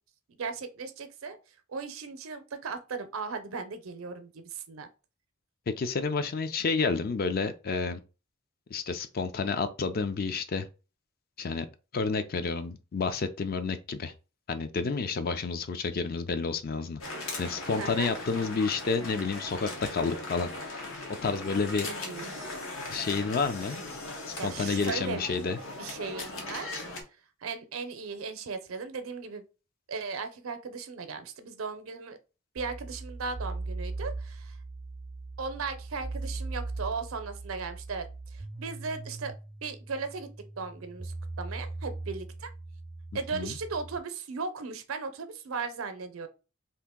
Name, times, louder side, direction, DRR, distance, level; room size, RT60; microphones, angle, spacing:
voice 1, 0.3-1.4 1.7-4.9 17.8-18.1 21.8-22.3 24.4-25.2 25.8-26.8 27.4-29.4 29.9-32.2 32.5-34.6 35.4-39.3 39.6-40.3 40.6-42.5 43.1-46.3, right 4 dB, 85° right, 0.6 m, -37 dB
voice 2, 5.7-8.0 8.7-10.7 11.4-11.7 11.9-14.1 14.5-17.0 17.4-21.9 22.9-23.8 24.3-25.6 43.3-43.6, left 4 dB, 45° left, 0.4 m, -30 dB
sound 1, 17.0-27.0, left 2 dB, 75° left, 0.9 m, -39 dB
sound 2, 32.6-44.0, right 3 dB, 20° right, 0.3 m, -39 dB
2.8 x 2.5 x 3.6 m
head